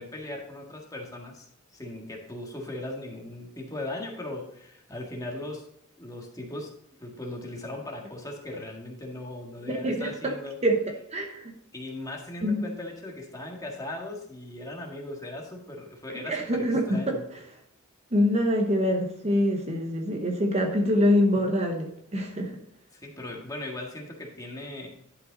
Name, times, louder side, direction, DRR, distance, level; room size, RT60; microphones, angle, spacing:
voice 1, 0.0-1.5 1.7-5.7 6.0-6.7 7.0-10.6 11.7-17.2 22.9-25.0, left 1 dB, 15° left, 0 dB, 1.7 m, -38 dB
voice 2, 9.8-10.4 10.6-11.5 12.4-12.6 16.3-17.1 18.1-22.6, equal, 30° right, 2 dB, 1.0 m, -25 dB
11.0 x 5.4 x 3.9 m, 0.72 s
head